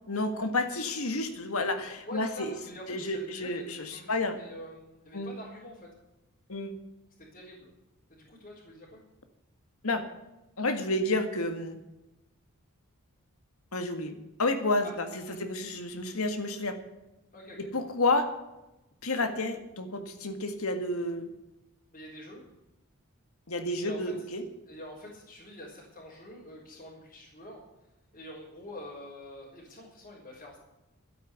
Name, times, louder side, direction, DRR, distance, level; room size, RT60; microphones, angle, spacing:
voice 1, 0.1-2.5 2.9-4.4 5.1-5.3 6.5-6.7 9.8-10.0 10.6-11.8 13.7-15.1 15.4-16.8 17.6-18.3 19.0-21.3 23.5-24.4, left 2 dB, 75° left, 8 dB, 1.8 m, -30 dB
voice 2, 2.0-5.9 7.2-7.7 8.1-9.0 14.8-14.9 17.3-17.6 21.9-22.4 23.8-24.1 24.7-27.6 28.1-30.6, left 1 dB, 40° left, -7 dB, 4.0 m, -46 dB
12.5 x 9.1 x 8.2 m, 0.96 s
head